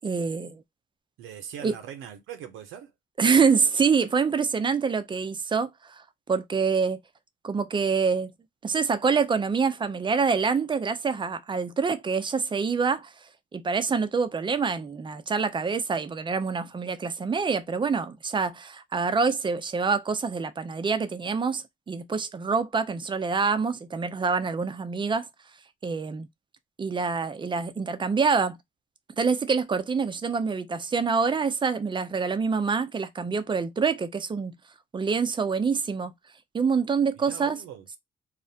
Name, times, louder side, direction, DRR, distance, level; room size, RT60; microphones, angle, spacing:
voice 1, 0.0-0.6 1.6-1.7 3.2-7.0 7.4-8.3 8.6-13.1 13.5-25.3 25.8-26.3 26.8-28.6 29.2-34.6 34.9-36.1 36.5-37.6, right 5 dB, 25° right, 0.4 m, -26 dB
voice 2, 1.2-2.9 37.2-38.0, right 9 dB, 90° right, 0.6 m, -41 dB
2.4 x 2.1 x 2.6 m
cardioid pair, 90°, 20 cm